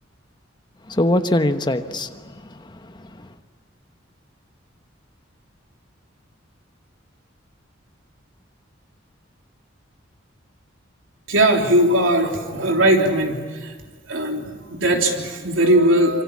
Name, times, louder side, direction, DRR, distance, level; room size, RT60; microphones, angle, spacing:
voice 1, 0.9-3.3, left 1 dB, 25° left, 8 dB, 1.2 m, -23 dB
voice 2, 11.3-13.7 14.1-16.2, right 1 dB, 75° right, 2 dB, 3.5 m, -19 dB
26.0 x 24.5 x 8.6 m, 1.4 s
head